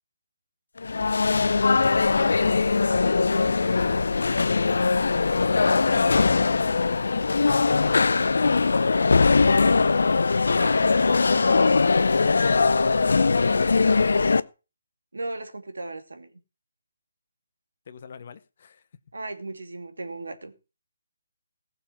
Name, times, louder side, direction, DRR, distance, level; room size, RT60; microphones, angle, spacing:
sound 1, 0.8-14.4, left 4 dB, 70° left, 0.7 m, -21 dB
voice 1, 2.1-3.1 7.4-9.9 17.9-18.8, left 6 dB, 50° left, 13 dB, 1.2 m, -43 dB
voice 2, 10.5-12.8 15.1-16.3 19.1-20.5, right 2 dB, 80° right, 7 dB, 2.6 m, -37 dB
16.5 x 6.9 x 5.9 m, 0.32 s
figure-of-eight pair, 150°, 0 cm